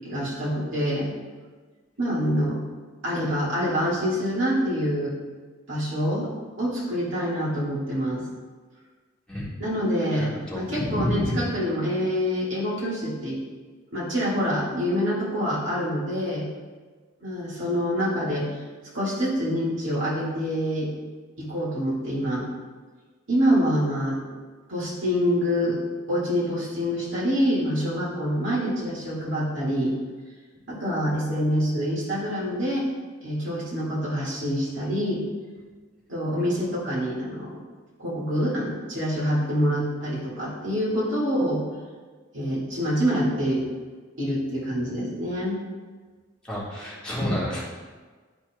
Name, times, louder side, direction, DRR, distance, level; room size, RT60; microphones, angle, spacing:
voice 1, 0.0-1.1 2.0-2.6 3.0-5.1 5.7-6.3 6.6-8.2 9.6-13.4 13.9-16.5 17.2-18.5 18.9-20.9 21.4-22.5 23.3-24.2 24.7-25.8 26.1-29.9 30.7-32.9 33.2-35.2 36.1-37.6 38.0-41.6 42.3-43.7 44.2-45.6, equal, 70° right, -6 dB, 2.0 m, -26 dB
voice 2, 10.2-11.3 46.5-47.6, left 1 dB, 5° left, -9 dB, 1.7 m, -29 dB
11.0 x 4.3 x 2.3 m, 1.4 s
head